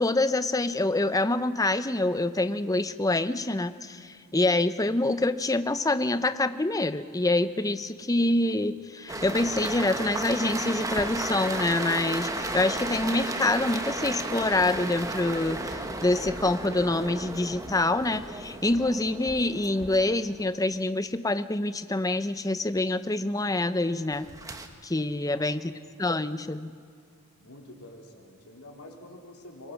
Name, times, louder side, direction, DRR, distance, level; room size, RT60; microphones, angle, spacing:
voice 1, 0.0-24.3 24.8-25.7 26.0-26.7, left 2 dB, 15° left, 12 dB, 0.6 m, -26 dB
sound 1, 9.1-20.6 24.1-24.7, right 2 dB, 15° right, 1.3 m, -34 dB
voice 2, 25.2-25.8 27.4-29.7, left 1 dB, 90° left, 1 dB, 3.4 m, -47 dB
23.5 x 21.5 x 6.0 m, 2.3 s
head